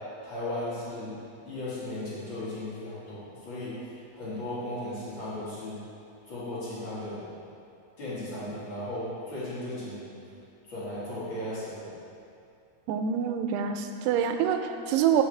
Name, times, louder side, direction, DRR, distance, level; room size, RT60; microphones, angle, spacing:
voice 1, 0.2-1.2 1.4-5.8 6.3-7.3 8.0-10.1 10.7-11.9, left 1 dB, 45° left, -10 dB, 1.6 m, -36 dB
voice 2, 12.9-15.2, right 8 dB, 85° right, 7 dB, 2.6 m, -26 dB
8.0 x 7.1 x 3.3 m, 2.6 s
omnidirectional pair, 4.7 m